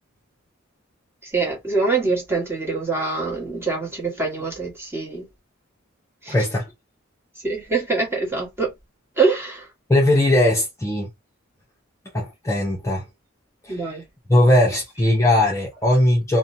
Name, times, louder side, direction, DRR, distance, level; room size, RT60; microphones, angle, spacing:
voice 1, 1.2-5.3 6.2-6.3 7.4-8.7 9.2-9.7 13.7-14.0, right 4 dB, 10° right, 1.2 m, -24 dB
voice 2, 6.3-6.7 9.9-11.1 12.1-13.0 13.6-14.0 14.3-16.4, left 1 dB, 15° left, 0.6 m, -19 dB
2.7 x 2.2 x 2.6 m
head